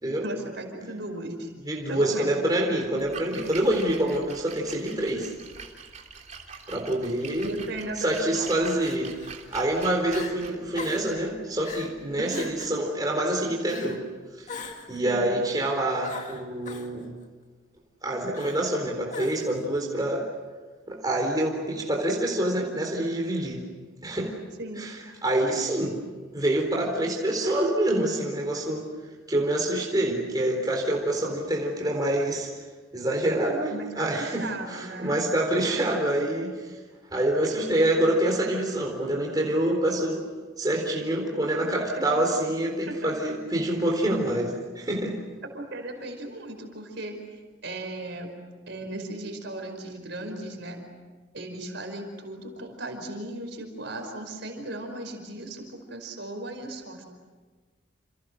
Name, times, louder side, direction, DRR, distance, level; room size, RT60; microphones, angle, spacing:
voice 1, 0.2-1.5 1.9-2.4 7.4-8.7 12.1-12.5 15.0-15.3 24.6-24.9 33.7-35.2 41.6-42.0 42.9-43.0 45.5-47.2 47.6-48.3 48.7-50.8 51.3-57.0, right 1 dB, 60° right, 4 dB, 5.1 m, -36 dB
voice 2, 1.6-5.3 6.7-7.5 8.0-9.1 9.5-14.0 14.4-14.5 14.9-17.1 18.0-20.2 20.9-23.6 24.0-24.3 24.8-26.0 26.3-28.9 29.3-32.5 32.9-36.8 37.1-40.2 40.6-45.2, right 1 dB, 20° right, -1 dB, 4.1 m, -26 dB
Splash splatter, 2.8-12.7, right 5 dB, 35° right, 3.3 m, -45 dB
Crying sobbing, 7.3-7.5 8.8-9.3 9.7-9.8 10.1-10.3 10.7-11.1 11.6-11.9 12.3-12.8 13.6-14.0 14.5-15.0 16.0-16.9 18.3-18.8 19.1-19.6, left 4 dB, 35° left, 2.4 m, -40 dB
29.0 x 29.0 x 6.5 m, 1.4 s
head